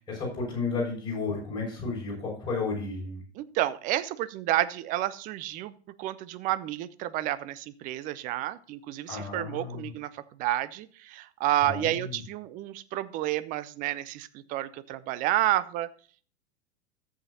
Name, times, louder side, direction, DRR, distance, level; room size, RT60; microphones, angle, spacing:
voice 1, 0.0-3.2 9.1-9.9 11.6-12.1, left 4 dB, 15° left, -5 dB, 5.6 m, -32 dB
voice 2, 3.4-5.7 6.0-10.1 10.4-15.9, right 14 dB, 25° right, 15 dB, 0.5 m, -30 dB
14.0 x 8.0 x 2.7 m, 0.41 s
figure-of-eight pair, 95°, 33 cm